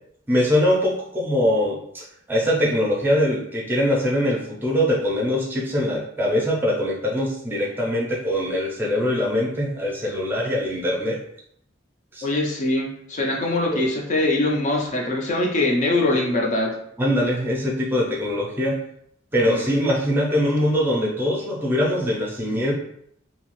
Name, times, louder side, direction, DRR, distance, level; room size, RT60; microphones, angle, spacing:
voice 1, 0.3-11.2 12.1-12.3 13.7-13.8 17.0-18.8 19.3-22.7, equal, 10° right, -3 dB, 0.6 m, -22 dB
voice 2, 12.2-16.7 19.4-19.6, left 2 dB, 40° left, -1 dB, 0.5 m, -22 dB
2.7 x 2.4 x 3.0 m, 0.70 s
head